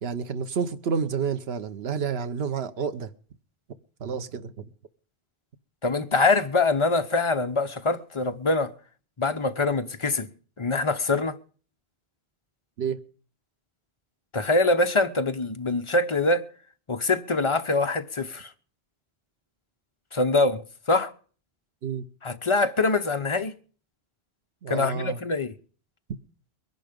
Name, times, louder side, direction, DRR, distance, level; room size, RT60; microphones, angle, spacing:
voice 1, 0.0-3.1 4.0-4.7 12.8-13.0 21.8-22.1 24.6-25.2, right 6 dB, 75° right, 1.2 m, -29 dB
voice 2, 5.8-8.7 9.2-10.3 10.6-11.4 14.3-16.5 16.9-18.5 20.1-21.1 22.2-23.5 24.7-25.5, left 3 dB, 30° left, 0.9 m, -24 dB
21.5 x 11.0 x 5.2 m
omnidirectional pair, 1.0 m